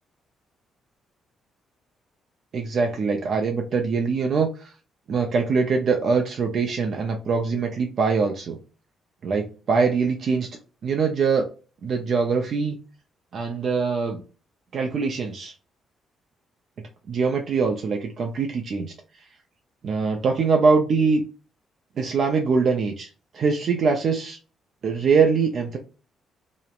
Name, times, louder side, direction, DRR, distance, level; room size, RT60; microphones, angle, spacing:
voice 1, 2.5-4.7 5.1-8.6 9.2-10.5 10.8-11.5 11.8-12.8 13.3-14.2 14.7-15.5 17.1-18.9 19.8-21.2 22.0-23.1 23.3-24.4 24.8-25.8, right 5 dB, 55° right, 3 dB, 0.4 m, -23 dB
2.9 x 2.0 x 2.3 m, 0.35 s
cardioid pair, 90°, 0 cm